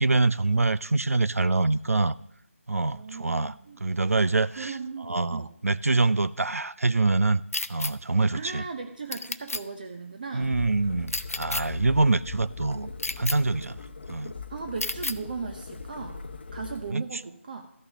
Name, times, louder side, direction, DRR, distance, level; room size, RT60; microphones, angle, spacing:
voice 1, 0.0-2.2 2.7-3.5 3.8-4.8 5.1-7.4 7.7-8.6 10.3-12.9 13.2-13.8 14.1-14.3 16.9-17.0, right 3 dB, 85° right, 17 dB, 0.5 m, -25 dB
voice 2, 2.8-3.8 4.5-5.5 8.3-10.6 14.5-16.2 16.5-17.7, right 4 dB, 40° right, 5 dB, 0.8 m, -37 dB
sound 1, 7.5-7.9 9.1-9.6 11.1-11.6 13.0-13.4 14.8-15.2, left 2 dB, 85° left, 0.6 m, -30 dB
sound 2, 10.4-16.9, left 4 dB, 45° left, 0.9 m, -40 dB
13.0 x 6.4 x 6.2 m, 0.76 s
figure-of-eight pair, 160°, 8 cm